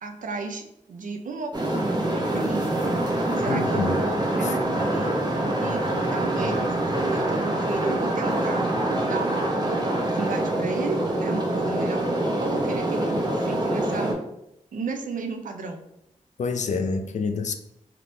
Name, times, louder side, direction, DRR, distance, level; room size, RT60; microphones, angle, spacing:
voice 1, 0.0-2.9 3.4-5.1 5.6-5.8 6.1-8.7 9.0-12.0 12.4-14.1 14.7-15.8, right 4 dB, 85° right, 0.5 m, -34 dB
sound 1, 1.5-14.1, right 1 dB, 30° right, 0.8 m, -25 dB
voice 2, 3.5-4.0 4.4-4.5 16.4-17.6, left 4 dB, 65° left, 0.4 m, -27 dB
3.4 x 2.9 x 2.6 m
cardioid pair, 60°, 13 cm